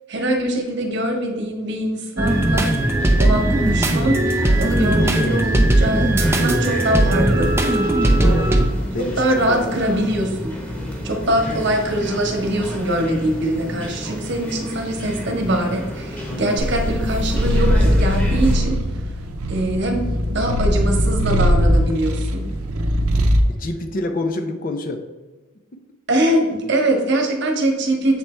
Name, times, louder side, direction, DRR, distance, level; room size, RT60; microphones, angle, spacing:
voice 1, 0.1-2.7 3.2-6.1 6.4-7.5 9.0-10.6 11.0-18.7 19.5-20.0 20.3-22.4 26.1-28.2, right 1 dB, 50° right, 2 dB, 1.0 m, -22 dB
sound 1, 2.2-18.6, equal, 5° left, 0.9 m, -31 dB
sound 2, 2.2-8.7, right 1 dB, 10° right, 0.4 m, -18 dB
voice 2, 5.0-5.4 8.2-8.5 8.9-9.7 16.3-16.6 23.5-25.0, left 2 dB, 40° left, 6 dB, 0.5 m, -27 dB
Purr, 16.6-23.5, equal, 80° right, 0.6 m, -20 dB
7.3 x 3.3 x 4.3 m, 1.2 s
head